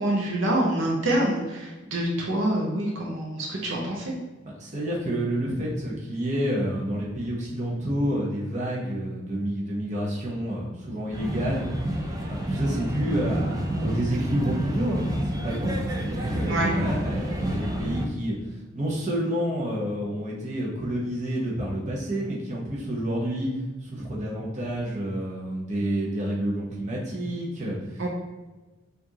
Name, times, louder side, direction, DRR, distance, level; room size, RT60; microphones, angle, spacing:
voice 1, 0.0-4.1 16.4-16.7 28.0-28.1, right 1 dB, 70° right, -2 dB, 0.8 m, -26 dB
voice 2, 4.4-23.5 23.8-28.1, equal, 35° right, -4 dB, 0.8 m, -29 dB
sound 1, 11.1-18.1, right 1 dB, 20° right, 0.4 m, -29 dB
4.8 x 2.6 x 2.8 m, 1.2 s
head